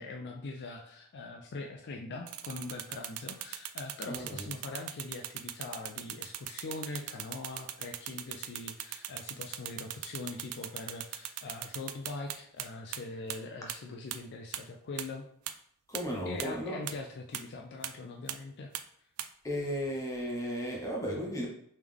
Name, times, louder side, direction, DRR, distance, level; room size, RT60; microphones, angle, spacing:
voice 1, 0.0-15.3 16.3-18.7, left 3 dB, 50° left, 2 dB, 0.4 m, -42 dB
sound 1, 2.3-12.6 12.9-13.0 13.3-13.4 13.7-13.8 14.1-14.2 14.5-14.6 15.0-15.1 15.5-15.6 15.9-16.0 16.4-16.5 16.9-17.0 17.3-17.4 17.8-17.9 18.3-18.4 18.7-18.8 19.2-19.3, right 12 dB, 80° right, 0.3 m, -38 dB
voice 2, 4.1-4.5 15.9-16.9 19.4-21.5, equal, 15° left, -3 dB, 1.0 m, -35 dB
3.5 x 3.2 x 3.4 m, 0.69 s
head